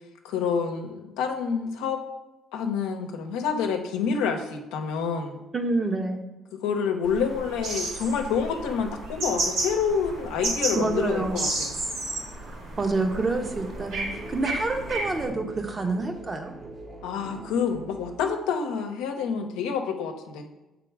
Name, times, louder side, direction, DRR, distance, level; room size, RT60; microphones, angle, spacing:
voice 1, 0.2-2.0 2.5-5.4 6.6-11.7 17.0-20.5, left 6 dB, 90° left, 4 dB, 0.8 m, -28 dB
voice 2, 5.5-6.2 10.8-11.4 12.5-16.5, right 3 dB, 30° right, 5 dB, 1.0 m, -28 dB
sound 1, 7.0-15.3, right 2 dB, 85° right, 2.2 m, -32 dB
sound 2, 13.1-18.2, right 2 dB, 45° right, 1.3 m, -43 dB
7.0 x 3.8 x 4.7 m, 1.0 s
supercardioid pair, 75°, 0 cm